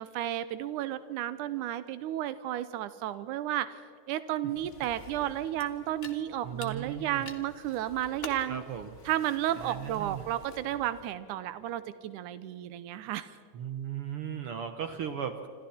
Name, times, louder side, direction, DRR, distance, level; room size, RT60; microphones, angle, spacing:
voice 1, 0.0-3.8 4.1-8.6 9.1-13.3, right 12 dB, 85° right, 13 dB, 2.2 m, -33 dB
sound 1, 4.6-11.1, left 3 dB, 35° left, 1.3 m, -49 dB
voice 2, 6.4-7.3 8.5-8.9 9.5-10.2 13.5-15.5, right 8 dB, 65° right, 8 dB, 1.5 m, -37 dB
27.0 x 26.5 x 4.3 m, 2.5 s
omnidirectional pair, 3.6 m